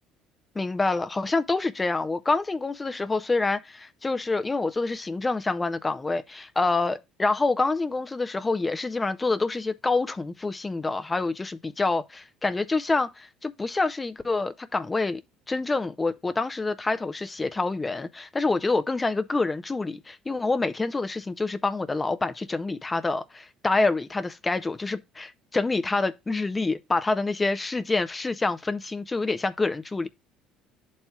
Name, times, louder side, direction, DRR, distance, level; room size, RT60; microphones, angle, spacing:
voice 1, 0.6-15.2 15.5-30.1, left 3 dB, 15° left, 0.4 m, -27 dB
11.5 x 4.2 x 2.2 m
cardioid pair, 145°, 0 cm